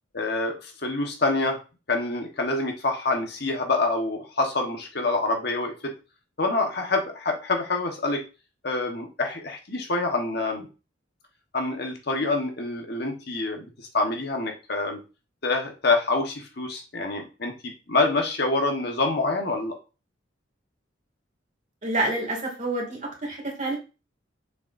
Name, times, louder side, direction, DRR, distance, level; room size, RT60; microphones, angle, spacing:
voice 1, 0.1-1.6 1.9-5.9 6.4-8.2 8.6-10.7 11.5-15.0 15.4-19.8, left 2 dB, 55° left, 3 dB, 1.3 m, -26 dB
voice 2, 21.8-23.8, right 2 dB, 40° right, 1 dB, 2.3 m, -28 dB
7.3 x 6.7 x 2.6 m, 0.32 s
head